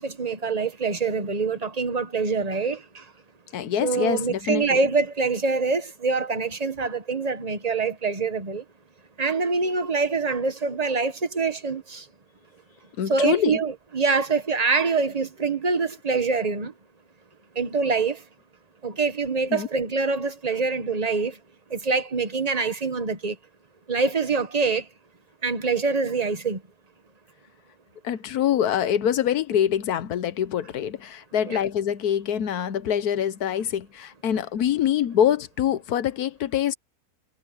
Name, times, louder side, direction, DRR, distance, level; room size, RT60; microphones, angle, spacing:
voice 1, 0.0-3.0 3.8-8.6 9.2-12.0 13.1-16.7 17.5-18.2 18.8-21.4 21.7-23.3 23.9-24.9 25.4-26.6 31.5-31.6, right 4 dB, 30° right, 1.2 m, -25 dB
voice 2, 3.5-4.8 13.0-13.6 19.5-19.7 28.0-36.7, left 9 dB, 80° left, 1.4 m, -25 dB
omnidirectional pair, 1.6 m